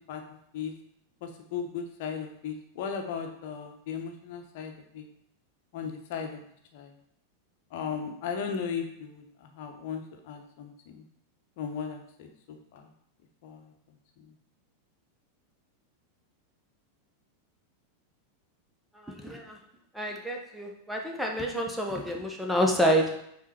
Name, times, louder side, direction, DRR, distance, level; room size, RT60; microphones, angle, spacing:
voice 1, 0.1-0.7 1.2-5.1 5.7-6.4 6.7-6.9 7.7-11.0 11.6-12.9 13.4-13.7 14.2-14.3, left 6 dB, 50° left, 5 dB, 1.1 m, -37 dB
voice 2, 19.0-19.6 19.9-23.2, equal, ahead, 1 dB, 1.0 m, -28 dB
5.7 x 4.4 x 4.8 m, 0.75 s
figure-of-eight pair, 90°, 0 cm